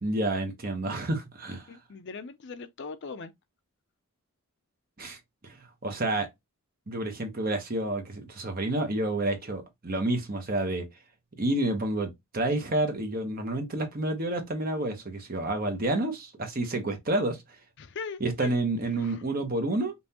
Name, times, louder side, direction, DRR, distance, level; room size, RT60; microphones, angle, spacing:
voice 1, 0.0-1.7 5.0-5.2 5.4-6.3 6.9-10.9 11.4-17.4 18.2-19.9, right 2 dB, 40° right, 1.0 m, -29 dB
voice 2, 1.7-3.3 17.8-18.5 19.0-19.2, left 4 dB, 50° left, 0.5 m, -40 dB
5.4 x 2.6 x 2.8 m
head